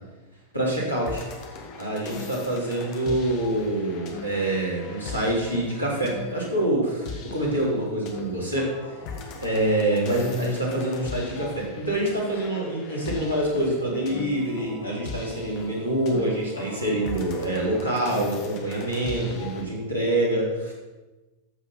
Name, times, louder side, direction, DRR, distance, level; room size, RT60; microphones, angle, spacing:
voice 1, 0.5-1.3 1.8-9.0 9.4-20.7, right 1 dB, 85° left, -4 dB, 4.0 m, -26 dB
sound 1, 1.0-19.6, left 4 dB, 40° left, 2.0 m, -39 dB
14.5 x 6.7 x 5.8 m, 1.1 s
figure-of-eight pair, 90°, 0 cm